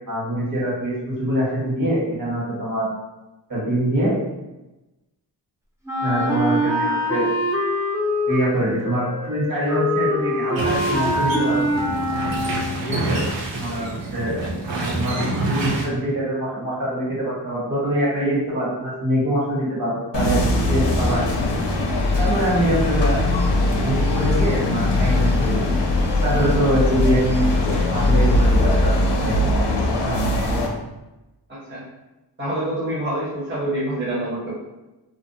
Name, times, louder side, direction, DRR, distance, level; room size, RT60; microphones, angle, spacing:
voice 1, 0.1-2.9 3.5-4.1 6.0-7.2 8.3-11.6 12.9-13.2 13.6-14.3 14.8-20.4 20.7-21.3 22.2-23.2 23.8-25.7 26.2-27.5 27.9-29.0 29.2-29.5 29.8-30.2, equal, 50° right, -7 dB, 1.2 m, -24 dB
Wind instrument woodwind instrument, 5.9-12.9, equal, 5° right, 0.4 m, -24 dB
sound 1, 10.6-15.8, right 2 dB, 90° right, 0.6 m, -27 dB
sound 2, 20.1-30.7, left 2 dB, 70° left, 0.5 m, -20 dB
voice 2, 31.5-31.8 32.4-34.5, right 1 dB, 25° right, -8 dB, 0.8 m, -27 dB
2.5 x 2.1 x 2.7 m, 1.0 s
wide cardioid pair, 95°, 43 cm